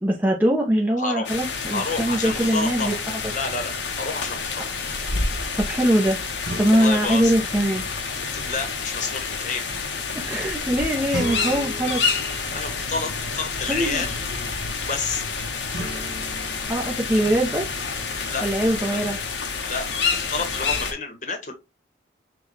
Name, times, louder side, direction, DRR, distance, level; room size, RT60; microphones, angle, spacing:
voice 1, 0.0-2.9 5.6-6.2 6.6-7.8 10.1-12.0 13.7-14.0 16.7-17.7 18.4-19.2, right 1 dB, 10° right, 0.6 m, -22 dB
voice 2, 1.0-1.3 1.7-3.0 3.3-3.7 4.0-4.7 6.7-7.3 8.2-9.6 12.5-15.2 18.2-19.0 19.7-19.8 20.1-21.5, left 4 dB, 40° left, 1.0 m, -30 dB
sound 1, 1.2-20.9, left 5 dB, 75° left, 0.8 m, -29 dB
sound 2, 2.5-3.5 6.5-8.6 11.1-13.3 15.7-17.9, equal, 80° right, 1.1 m, -38 dB
Bird / Wind, 4.7-11.3, equal, 55° right, 1.1 m, -36 dB
6.0 x 2.3 x 3.2 m
head